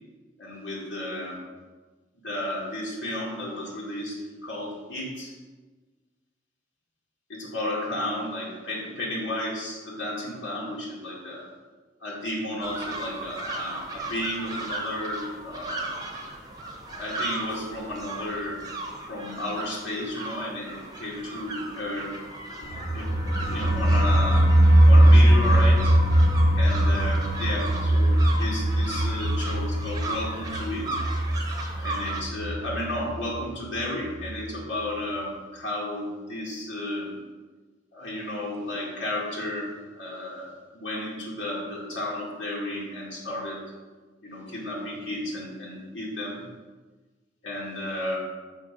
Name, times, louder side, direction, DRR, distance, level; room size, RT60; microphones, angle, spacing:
voice 1, 0.4-1.4 2.2-5.3 7.3-11.5 12.0-15.9 16.9-18.7 19.1-22.1 22.5-24.5 24.9-26.0 26.6-30.9 31.8-37.2 37.9-43.6 44.2-46.4 47.4-48.2, left 1 dB, 85° left, -5 dB, 1.9 m, -33 dB
sound 1, 12.6-32.2, right 2 dB, 20° right, 0.9 m, -36 dB
sound 2, 22.6-33.3 33.6-33.7 34.1-34.2, right 1 dB, 40° left, 1.3 m, -21 dB
6.5 x 5.2 x 5.2 m, 1.3 s
head